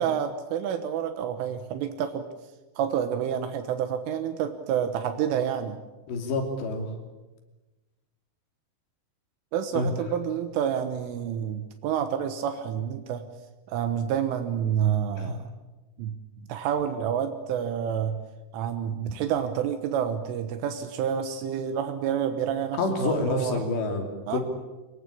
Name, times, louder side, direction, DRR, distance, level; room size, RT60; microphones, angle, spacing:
voice 1, 0.0-2.3 2.8-5.8 9.5-13.2 13.7-15.4 16.0-16.2 16.5-18.2 18.5-23.7 24.3-24.4, right 8 dB, 80° right, 8 dB, 3.7 m, -28 dB
voice 2, 6.1-6.9 9.7-9.9 15.2-15.3 22.8-24.4, left 2 dB, 60° left, 4 dB, 4.9 m, -28 dB
24.0 x 21.5 x 8.6 m, 1.1 s
omnidirectional pair, 5.8 m